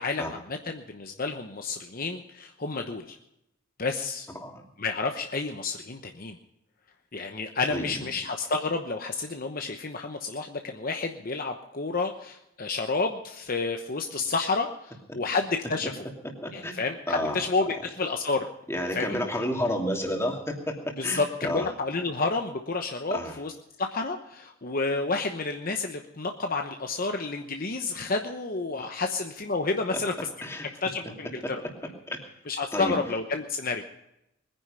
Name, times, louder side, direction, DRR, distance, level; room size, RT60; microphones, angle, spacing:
voice 1, 0.0-3.2 3.8-4.3 4.8-6.4 7.1-16.0 16.5-18.4 18.9-19.1 21.0-23.5 23.8-30.1 30.8-31.6 32.5-33.8, left 3 dB, 45° left, 5 dB, 1.0 m, -30 dB
voice 2, 16.4-16.7 17.1-17.4 18.7-20.7 21.0-21.6 23.1-23.3 30.4-30.7 31.4-31.7 32.1-32.2 32.7-32.9, left 1 dB, 15° left, 1 dB, 2.7 m, -30 dB
21.0 x 10.0 x 5.6 m, 0.82 s
head